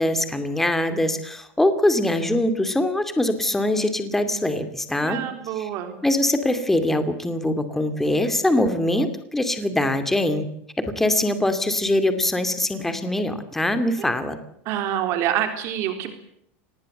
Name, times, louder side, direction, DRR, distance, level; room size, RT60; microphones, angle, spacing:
voice 1, 0.0-5.2 5.6-5.7 6.0-10.5 10.8-14.4, left 1 dB, 5° left, 9 dB, 2.5 m, -23 dB
voice 2, 5.0-6.0 14.7-16.1, right 11 dB, 45° right, 6 dB, 3.8 m, -26 dB
26.5 x 20.0 x 7.9 m, 0.71 s
supercardioid pair, 165°, 7 cm